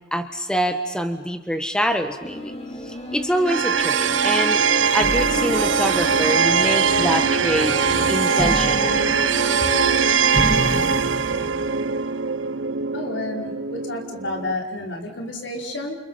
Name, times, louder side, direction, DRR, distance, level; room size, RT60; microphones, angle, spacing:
voice 1, 0.1-2.5 2.8-4.6 4.9-7.8 8.1-9.1, equal, 5° left, 8 dB, 1.4 m, -25 dB
sound 1, 2.2-10.8, left 1 dB, 35° left, 3.6 m, -31 dB
sound 2, 3.5-14.5, right 6 dB, 85° right, 0.9 m, -21 dB
sound 3, 5.0-6.9 8.4-11.8, right 1 dB, 15° right, 2.3 m, -30 dB
voice 2, 12.9-16.0, left 2 dB, 70° left, 2 dB, 5.1 m, -30 dB
29.5 x 29.5 x 5.8 m, 1.1 s
head